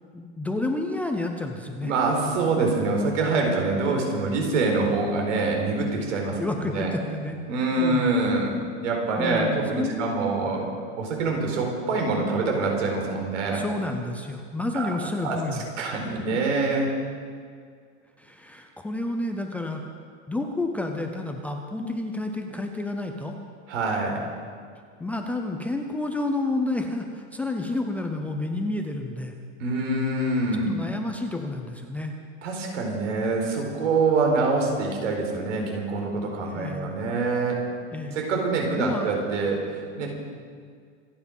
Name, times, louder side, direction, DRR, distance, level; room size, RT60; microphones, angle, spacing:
voice 1, 0.1-1.9 6.4-7.4 7.8-8.1 8.4-10.3 13.5-16.2 18.2-19.8 20.3-23.4 25.0-29.3 30.5-32.2 36.5-36.9 37.9-38.2 38.8-39.1, left 2 dB, 5° left, 3 dB, 0.5 m, -30 dB
voice 2, 1.8-6.9 7.5-8.5 8.8-10.7 11.0-13.7 14.7-15.4 15.8-16.9 23.7-24.2 29.6-30.7 32.4-37.6 38.1-40.1, right 3 dB, 85° right, 1 dB, 4.6 m, -25 dB
26.5 x 9.7 x 5.4 m, 2.1 s
supercardioid pair, 165°, 36 cm